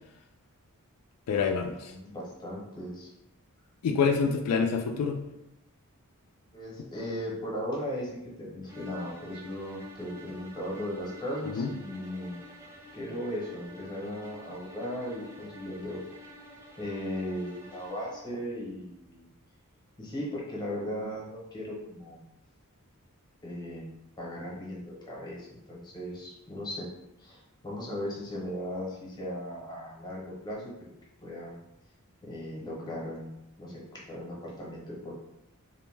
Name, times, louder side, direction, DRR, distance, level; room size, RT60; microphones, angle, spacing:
voice 1, 1.3-1.9 3.8-5.3 11.5-11.7, left 5 dB, 80° left, 4 dB, 0.3 m, -27 dB
voice 2, 1.8-3.1 6.5-12.4 12.9-16.3 16.8-19.3 20.0-22.2 23.4-23.9 24.2-26.9 27.2-30.7 31.2-31.6 32.2-35.1, equal, 20° left, -4 dB, 0.7 m, -37 dB
sound 1, 8.6-18.3, left 1 dB, 10° right, 0.4 m, -48 dB
2.5 x 2.1 x 3.2 m, 0.88 s
head